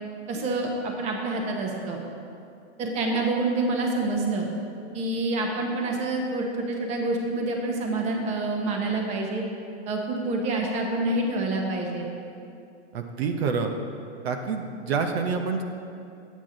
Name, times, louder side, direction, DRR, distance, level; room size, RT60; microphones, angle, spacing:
voice 1, 0.3-2.0 2.8-4.5 4.9-9.4 9.9-12.1, right 2 dB, 20° right, 1 dB, 0.9 m, -27 dB
voice 2, 12.9-13.7 14.2-15.6, right 5 dB, 60° right, 5 dB, 0.8 m, -27 dB
8.8 x 8.3 x 3.9 m, 2.5 s
hypercardioid pair, 155°, 35 cm